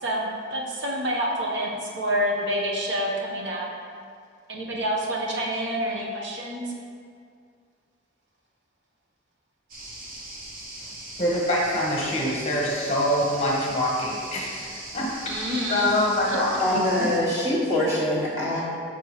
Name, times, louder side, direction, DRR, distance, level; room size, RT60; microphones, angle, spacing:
voice 1, 0.0-3.7 4.5-6.7 15.3-15.9 16.3-16.4, equal, 60° right, -2 dB, 1.0 m, -28 dB
sound 1, 9.7-17.2, right 1 dB, 45° right, 0.9 m, -40 dB
voice 2, 11.2-17.1, left 1 dB, 30° left, -4 dB, 1.0 m, -25 dB
voice 3, 16.6-18.6, left 1 dB, 15° right, -7 dB, 1.4 m, -24 dB
6.7 x 6.0 x 3.1 m, 2.2 s
head